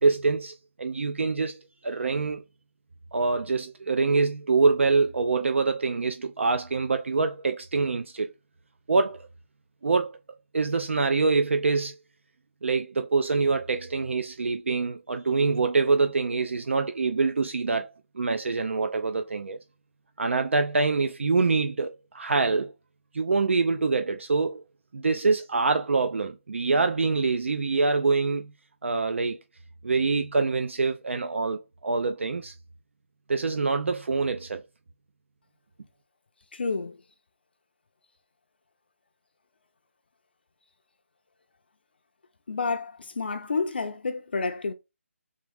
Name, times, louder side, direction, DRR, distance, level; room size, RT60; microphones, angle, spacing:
voice 1, 0.0-2.4 3.1-8.3 8.9-9.3 9.8-10.1 10.5-12.0 12.6-17.9 18.1-19.6 20.2-22.7 23.1-24.6 24.9-28.5 28.8-29.4 29.8-32.5 33.3-34.6, right 4 dB, 60° right, 0.4 m, -25 dB
voice 2, 36.5-37.0 42.5-44.7, left 4 dB, 45° left, 0.5 m, -29 dB
3.6 x 3.0 x 3.4 m
hypercardioid pair, 175°, 7 cm